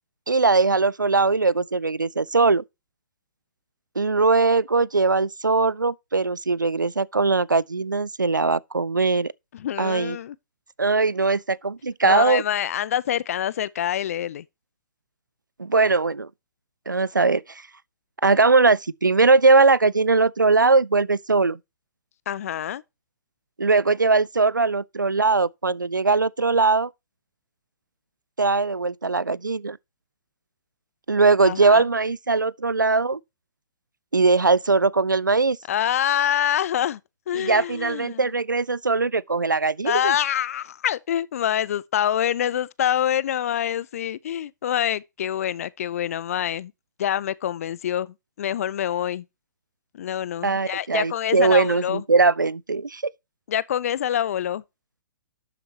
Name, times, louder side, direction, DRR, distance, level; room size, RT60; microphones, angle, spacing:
voice 1, 0.3-2.6 4.0-9.3 9.8-10.2 10.8-12.4 15.6-16.3 16.9-17.4 18.2-21.6 23.6-26.9 28.4-29.8 31.1-33.2 34.1-35.6 37.3-40.1 50.4-53.0, right 3 dB, 85° right, 0.4 m, -20 dB
voice 2, 9.5-10.4 12.0-14.4 22.3-22.8 31.4-31.9 35.7-37.0 37.3-38.2 39.8-46.7 47.0-49.2 49.9-52.0 53.5-54.6, left 10 dB, 50° left, 0.6 m, -26 dB
11.5 x 7.7 x 2.9 m
figure-of-eight pair, 120°, 10 cm